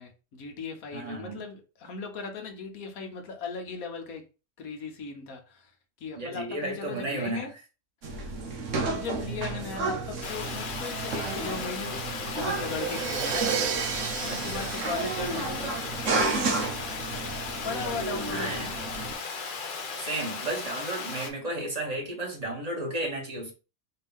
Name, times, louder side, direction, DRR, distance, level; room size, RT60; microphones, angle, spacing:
voice 1, 0.0-4.3 4.6-5.7 6.0-7.5 8.1-8.6 8.8-13.5 13.9-15.8 17.6-18.7, left 5 dB, 65° left, 1.4 m, -38 dB
voice 2, 0.9-1.4 6.2-7.5 14.3-14.7 18.3-18.7 20.0-23.5, right 2 dB, 25° right, 1.6 m, -33 dB
sound 1, 8.0-19.1, right 3 dB, 60° right, 1.1 m, -32 dB
Water, 10.2-21.3, left 4 dB, 45° left, 0.7 m, -36 dB
Crash cymbal, 12.6-16.3, right 8 dB, 80° right, 1.2 m, -33 dB
4.5 x 2.9 x 3.5 m
omnidirectional pair, 1.6 m